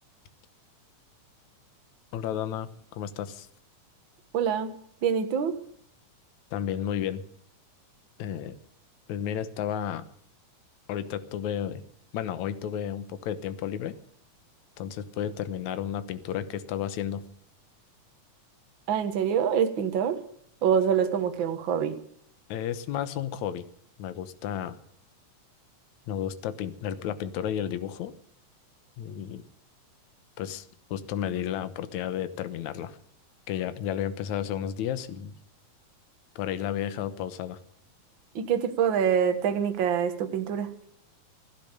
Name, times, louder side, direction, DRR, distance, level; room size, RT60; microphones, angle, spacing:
voice 1, 2.1-3.5 6.5-7.2 8.2-8.6 9.1-10.1 10.9-11.8 12.1-14.0 14.8-17.2 22.5-23.7 24.0-24.8 26.1-28.1 29.0-29.4 30.4-33.0 33.5-35.3 36.4-37.6, left 9 dB, 70° left, 12 dB, 2.3 m, -32 dB
voice 2, 4.3-4.8 5.0-5.6 18.9-20.2 20.6-22.0 38.3-40.7, right 8 dB, 50° right, 8 dB, 1.7 m, -25 dB
16.0 x 12.0 x 6.7 m, 0.66 s
omnidirectional pair, 3.6 m